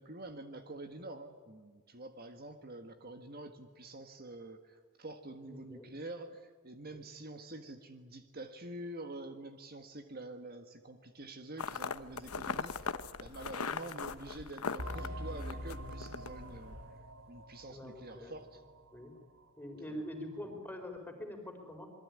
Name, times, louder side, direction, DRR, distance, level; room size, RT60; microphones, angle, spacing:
voice 1, 0.0-16.8 17.3-18.6 19.8-20.0, right 2 dB, 45° right, 7 dB, 1.6 m, -47 dB
voice 2, 5.4-5.9 17.7-18.3 18.9-19.1 19.6-21.9, left 1 dB, 10° left, 4 dB, 4.4 m, -44 dB
sound 1, 11.6-16.9, left 5 dB, 80° left, 1.0 m, -40 dB
sound 2, 14.8-19.1 19.4-19.5 20.0-20.1, equal, 65° right, 2.6 m, -45 dB
27.5 x 22.5 x 9.7 m, 1.5 s
head